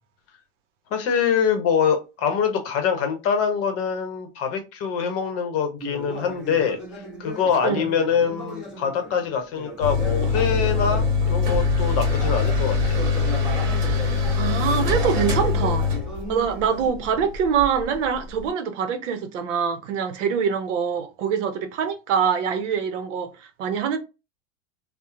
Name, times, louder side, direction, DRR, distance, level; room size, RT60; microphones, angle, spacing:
voice 1, 0.9-6.8 7.2-13.0, left 7 dB, 40° left, 0.8 m, -24 dB
Conversation, 5.8-11.5 12.0-16.9, right 1 dB, ahead, 1.0 m, -37 dB
sound 1, 9.8-18.5, left 4 dB, 45° right, 1.2 m, -23 dB
voice 2, 13.8-15.9 16.3-24.0, right 7 dB, 70° right, 0.7 m, -24 dB
2.8 x 2.0 x 2.4 m
hypercardioid pair, 115°, 38 cm